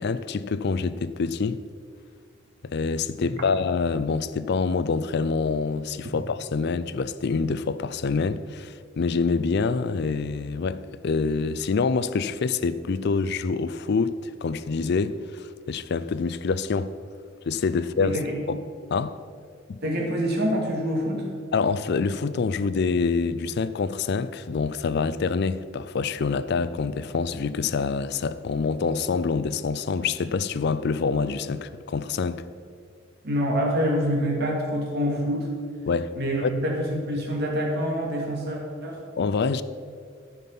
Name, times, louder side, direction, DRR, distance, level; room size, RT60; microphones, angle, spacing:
voice 1, 0.0-1.6 2.6-16.9 17.5-18.2 18.5-18.6 18.9-19.2 19.7-19.8 21.5-32.4 35.9-36.1 36.4-36.5 39.2-39.6, left 4 dB, 55° left, 0.4 m, -26 dB
voice 2, 18.0-18.3 19.8-21.3 33.2-35.5 36.1-39.0, equal, 55° right, 2.3 m, -26 dB
13.5 x 5.7 x 5.5 m
head